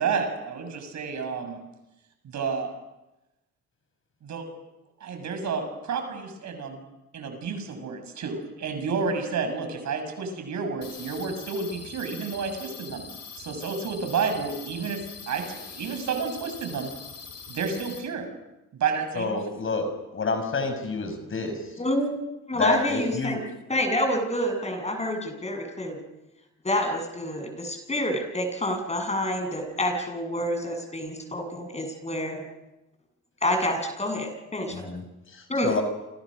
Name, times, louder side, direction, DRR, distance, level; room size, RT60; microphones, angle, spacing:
voice 1, 0.0-1.6 2.2-2.7 4.2-4.4 5.0-6.8 7.1-13.1 13.3-15.0 15.3-16.9 17.5-18.3 18.7-19.4, right 5 dB, 65° right, 6 dB, 6.9 m, -30 dB
sound 1, 10.8-18.0, left 6 dB, 60° left, 7.8 m, -43 dB
voice 2, 19.1-21.8 22.5-23.4 34.7-35.8, left 3 dB, 45° left, 7 dB, 6.2 m, -29 dB
voice 3, 21.8-23.4 23.7-26.0 26.6-32.4 33.4-34.9 35.5-35.7, left 1 dB, 20° left, 5 dB, 7.5 m, -28 dB
29.0 x 26.0 x 6.5 m, 0.99 s
cardioid pair, 90°, 30 cm